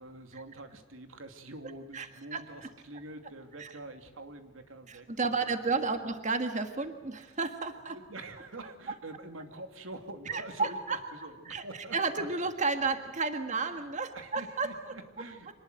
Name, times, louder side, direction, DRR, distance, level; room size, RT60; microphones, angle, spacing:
voice 1, 0.0-5.5 6.0-6.1 7.2-7.3 7.9-12.3 13.5-13.9 14.1-15.5, right 2 dB, 90° right, 7 dB, 2.6 m, -46 dB
voice 2, 4.9-8.0 10.3-11.0 11.4-11.6 11.9-14.9, right 4 dB, 40° right, 7 dB, 1.6 m, -32 dB
25.5 x 20.0 x 7.8 m, 1.3 s
head